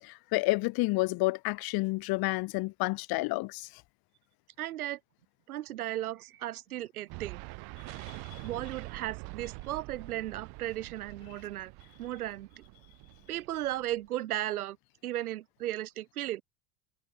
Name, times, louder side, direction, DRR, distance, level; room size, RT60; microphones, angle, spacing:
voice 1, 0.0-3.7, left 23 dB, 55° left, 1.3 m, -30 dB
voice 2, 4.6-5.0 5.5-7.4 8.4-11.7 12.0-12.6 13.3-14.8 15.0-16.4, right 14 dB, 85° right, 2.0 m, -35 dB
sound 1, 7.1-14.1, right 28 dB, 60° right, 1.8 m, -45 dB
hypercardioid pair, 85°, 43 cm